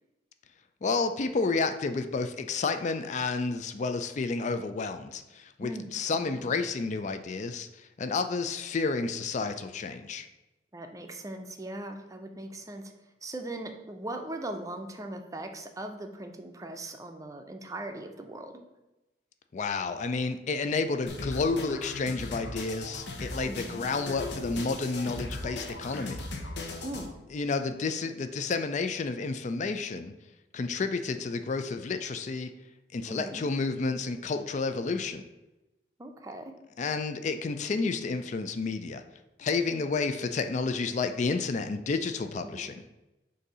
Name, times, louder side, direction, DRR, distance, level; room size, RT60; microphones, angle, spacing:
voice 1, 0.8-10.3 19.5-26.2 27.3-30.1 30.5-32.5 32.9-35.2 36.8-39.0 39.4-42.8, left 4 dB, 40° left, 8 dB, 0.4 m, -30 dB
voice 2, 6.1-6.5 10.7-12.9 13.2-18.5 23.5-23.8 26.8-27.1 33.1-33.4 36.0-36.5 42.4-42.7, right 1 dB, 20° right, 5 dB, 0.5 m, -39 dB
sound 1, 21.1-27.1, left 2 dB, 75° left, 0.8 m, -38 dB
6.5 x 2.7 x 5.4 m, 1.0 s
head